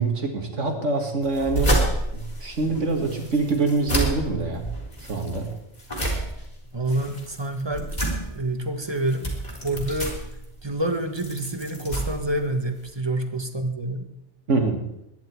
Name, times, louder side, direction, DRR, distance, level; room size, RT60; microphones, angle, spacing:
voice 1, 0.0-1.8 2.1-4.7 5.1-5.5 14.5-14.9, right 3 dB, 90° right, 4 dB, 2.5 m, -25 dB
sound 1, 1.2-13.0, right 1 dB, 35° left, 4.2 m, -29 dB
voice 2, 6.7-8.0 8.3-9.3 9.6-10.1 10.6-14.1, right 1 dB, 20° right, 6 dB, 1.4 m, -27 dB
22.0 x 10.5 x 4.7 m, 0.85 s
omnidirectional pair, 1.2 m